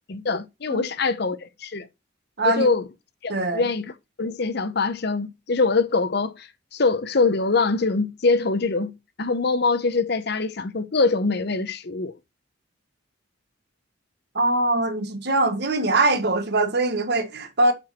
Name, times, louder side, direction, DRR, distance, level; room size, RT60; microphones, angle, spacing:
voice 1, 0.1-1.9 2.4-2.8 3.2-3.9 4.2-8.9 9.2-12.1, left 3 dB, 55° left, 0.8 m, -23 dB
voice 2, 2.4-2.7 3.3-3.6 14.3-17.7, right 2 dB, 55° right, 1.4 m, -22 dB
7.5 x 4.7 x 4.3 m
head